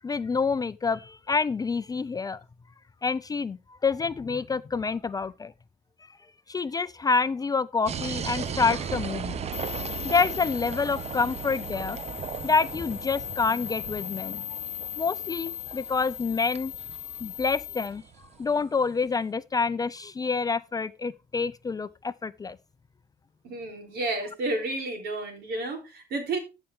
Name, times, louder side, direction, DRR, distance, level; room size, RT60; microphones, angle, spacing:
voice 1, 0.0-2.4 3.0-5.5 6.5-9.4 10.0-12.0 12.4-14.5 15.0-16.7 17.2-18.0 18.4-22.6, left 4 dB, 20° left, 0.4 m, -27 dB
sound 1, 7.9-18.6, right 7 dB, 40° right, 0.7 m, -37 dB
sound 2, 9.5-17.9, left 12 dB, 85° left, 0.9 m, -38 dB
voice 2, 23.4-26.4, right 2 dB, 70° right, 3.6 m, -31 dB
14.0 x 5.7 x 3.5 m
cardioid pair, 110°, 17 cm